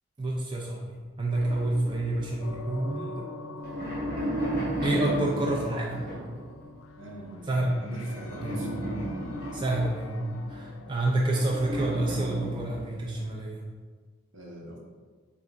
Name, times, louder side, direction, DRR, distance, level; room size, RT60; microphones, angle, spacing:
voice 1, 0.2-3.2 4.8-6.1 7.5-7.9 8.4-8.8 9.5-13.6, right 1 dB, 25° right, -3 dB, 0.4 m, -28 dB
sound 1, 1.3-2.9 3.4-6.5 8.1-10.6 11.3-13.2, right 1 dB, 45° right, 1.1 m, -34 dB
sound 2, 2.4-11.4, left 2 dB, 80° left, 0.4 m, -44 dB
voice 2, 7.0-8.7 14.3-14.8, right 1 dB, 70° right, -1 dB, 0.9 m, -43 dB
3.5 x 3.4 x 3.8 m, 1.5 s
head